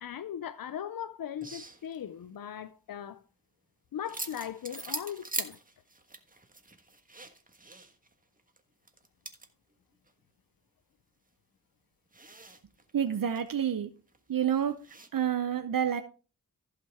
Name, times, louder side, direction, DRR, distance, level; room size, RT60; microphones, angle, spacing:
voice 1, 0.0-3.2 3.9-5.6, left 9 dB, 85° left, 0.6 m, -39 dB
sound 1, 1.4-2.2 4.0-8.1 8.4-8.6 8.9-9.5 10.1-10.2 12.1-13.5 14.1-14.2 14.6-15.1, right 2 dB, 25° right, 1.4 m, -41 dB
voice 2, 12.9-13.9 14.3-14.8 15.1-16.0, right 9 dB, 75° right, 0.8 m, -28 dB
15.0 x 5.8 x 3.6 m
wide cardioid pair, 65°, 34 cm